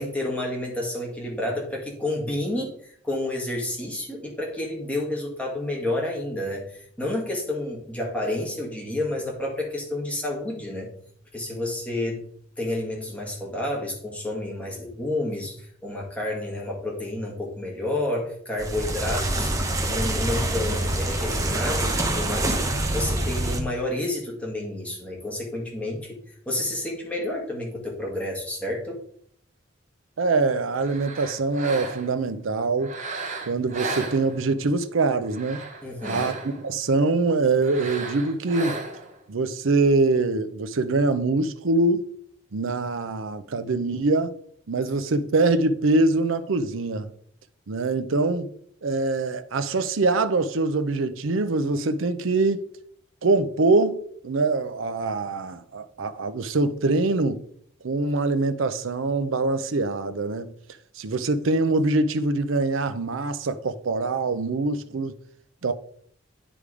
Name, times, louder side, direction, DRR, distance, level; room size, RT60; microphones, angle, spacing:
voice 1, 0.0-10.9 11.3-12.2 12.6-19.5 19.8-22.6 22.9-26.2 26.5-29.0 35.8-36.3, left 1 dB, 5° left, 1.8 m, -30 dB
sound 1, 18.6-23.6, right 1 dB, 15° right, 0.9 m, -26 dB
voice 2, 30.2-33.0 33.5-35.6 36.1-36.3 36.6-38.7 39.3-42.1 42.5-44.3 44.7-47.1 47.7-48.5 48.8-52.6 53.2-57.4 57.8-60.5 61.0-65.1 65.6-65.7, right 3 dB, 85° right, 0.6 m, -24 dB
sound 2, 30.7-32.2 32.8-34.7 35.2-36.7 37.6-39.2, right 3 dB, 40° right, 1.2 m, -35 dB
10.0 x 3.5 x 4.8 m
head